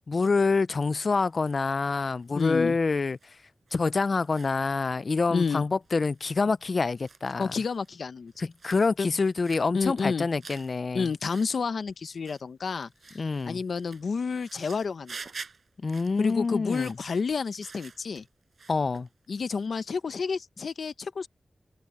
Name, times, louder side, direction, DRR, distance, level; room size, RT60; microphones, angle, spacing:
voice 1, 0.1-3.2 3.7-7.5 8.4-11.1 13.2-13.6 15.8-16.9 18.7-19.1, left 4 dB, 50° left, 0.4 m, -26 dB
sound 1, 0.8-1.6 1.9-2.3 2.8-3.3 3.7-3.8 4.2-4.5 4.9-5.0 5.4-5.5 5.8-6.3 6.6-7.9 8.3-8.9 9.2-9.7 10.0-10.8 11.0-11.5 11.9-12.4 12.7-18.3 18.5-19.7 19.9-20.4, right 5 dB, 65° right, 6.7 m, -48 dB
voice 2, 2.3-2.8 5.3-5.6 7.4-8.3 9.0-9.1 9.7-10.3 10.9-15.2 16.2-18.2 19.3-21.3, left 5 dB, 75° left, 0.9 m, -30 dB
open air
wide cardioid pair, 100°, 0 cm